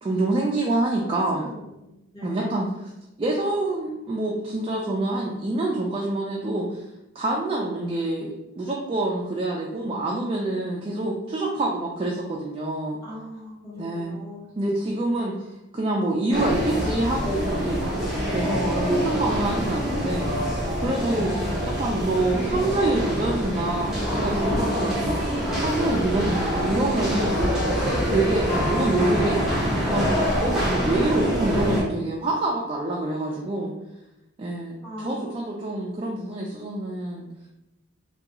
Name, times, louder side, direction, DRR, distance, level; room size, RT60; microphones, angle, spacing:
voice 1, 0.0-1.5 2.2-2.7 3.2-6.8 7.2-8.3 8.6-13.0 13.8-14.2 14.6-15.5 15.7-17.9 18.3-20.3 20.8-21.4 21.6-25.2 25.6-27.6 28.1-29.4 29.7-30.1 30.4-33.7 34.4-37.3, right 2 dB, 25° right, -2 dB, 0.3 m, -26 dB
voice 2, 1.0-1.9 2.1-2.6 13.0-14.5 19.3-19.9 30.7-31.3 34.8-35.5, left 1 dB, 15° left, -8 dB, 1.2 m, -39 dB
sound 1, 16.3-31.8, equal, ahead, 0.7 m, -25 dB
3.4 x 2.3 x 2.9 m, 0.92 s
head